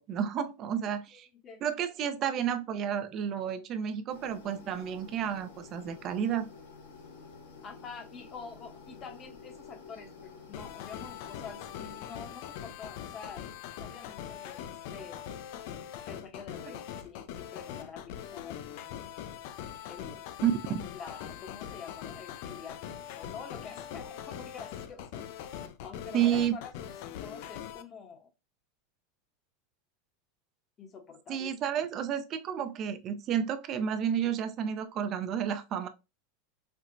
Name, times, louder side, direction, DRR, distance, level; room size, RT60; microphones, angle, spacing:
voice 1, 0.0-1.3 1.6-6.5 20.4-20.8 26.1-26.6 31.3-35.9, right 9 dB, 40° right, 0.5 m, -31 dB
sound 1, 4.1-12.0, left 5 dB, 85° left, 1.0 m, -50 dB
voice 2, 7.6-13.5 13.8-15.3 16.1-19.0 19.9-20.2 20.9-25.2 25.8-28.3 30.8-31.5, left 5 dB, 35° left, 0.8 m, -47 dB
sound 2, 10.5-27.8, left 10 dB, 65° left, 0.4 m, -42 dB
4.4 x 2.0 x 2.5 m
supercardioid pair, 125°, 0 cm